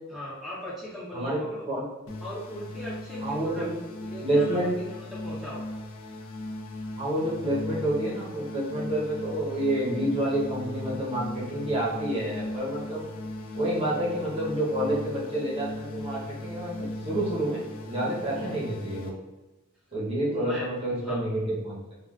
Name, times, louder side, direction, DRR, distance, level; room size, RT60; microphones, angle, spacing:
voice 1, 0.1-1.7 2.2-5.0 5.2-5.6 18.3-18.5 20.3-21.2, equal, ahead, -9 dB, 0.5 m, -39 dB
sound 1, 2.1-19.1, left 1 dB, 80° left, 0.5 m, -37 dB
voice 2, 3.2-3.7 4.2-4.7 7.0-13.0 13.5-17.6 17.9-19.1 19.9-21.8, right 1 dB, 30° right, -5 dB, 0.8 m, -28 dB
3.5 x 2.3 x 2.3 m, 1.1 s
head